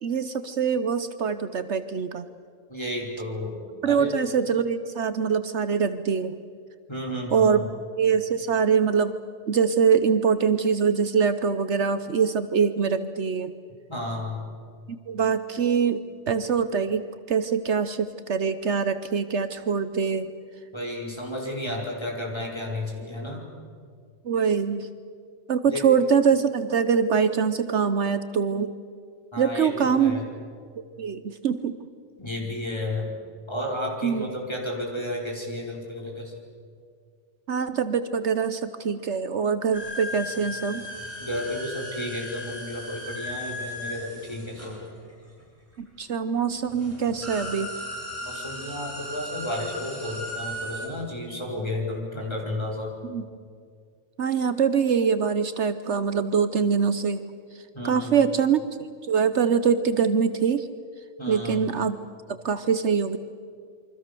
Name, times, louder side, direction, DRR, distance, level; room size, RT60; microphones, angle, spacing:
voice 1, 0.0-2.3 3.8-6.3 7.3-7.7 8.0-9.2 9.5-13.5 14.9-20.3 24.2-24.9 25.5-28.7 29.4-30.2 31.0-31.8 34.0-34.2 37.5-40.9 45.8-47.7 53.0-53.2 54.2-57.2 57.8-60.7 61.3-62.0 62.4-63.2, right 6 dB, 65° right, 12 dB, 1.2 m, -24 dB
voice 2, 2.7-3.6 3.8-4.1 6.9-7.6 13.9-14.4 20.7-23.4 25.6-25.8 29.3-30.2 32.2-33.1 33.5-36.3 41.2-44.8 48.2-52.9 57.7-58.2 61.2-61.7, left 1 dB, 20° left, -1 dB, 5.1 m, -32 dB
sound 1, 39.7-45.4 46.3-46.4 46.7-50.9, left 1 dB, 10° right, 8.0 m, -36 dB
28.0 x 24.5 x 6.9 m, 2.1 s
omnidirectional pair, 1.3 m